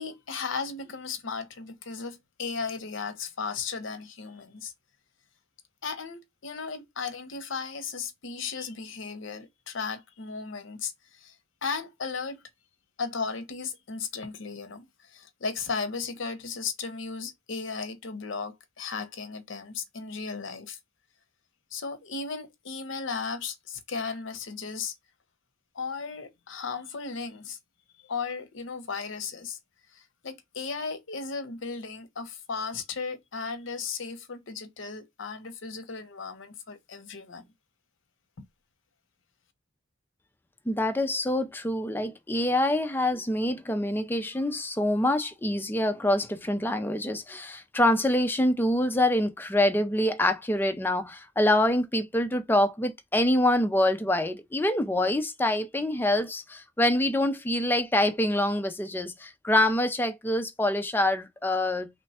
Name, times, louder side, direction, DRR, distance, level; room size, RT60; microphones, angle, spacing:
voice 1, 0.0-4.7 5.8-11.3 11.6-12.4 13.0-20.8 21.7-24.9 25.7-27.6 28.0-29.6 29.9-37.5 38.4-38.5, left 5 dB, 70° left, 0.7 m, -35 dB
voice 2, 40.7-61.9, left 1 dB, 10° left, 0.4 m, -25 dB
3.2 x 2.2 x 4.1 m
head